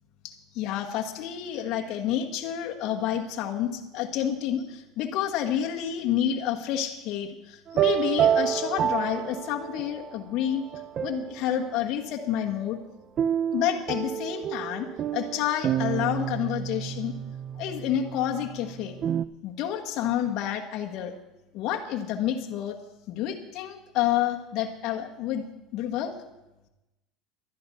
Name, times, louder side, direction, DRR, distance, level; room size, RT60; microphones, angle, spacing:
voice 1, 0.2-10.7 11.0-12.8 13.5-14.9 15.1-17.1 17.6-19.0 19.4-21.1 21.5-22.8 23.1-25.5 25.7-26.1, left 10 dB, 55° left, 1 dB, 1.2 m, -29 dB
sound 1, 7.7-10.1 10.6-11.6 13.2-19.3, right 9 dB, 40° right, 0.3 m, -29 dB
11.5 x 10.5 x 5.5 m, 0.98 s
supercardioid pair, 120°, 0 cm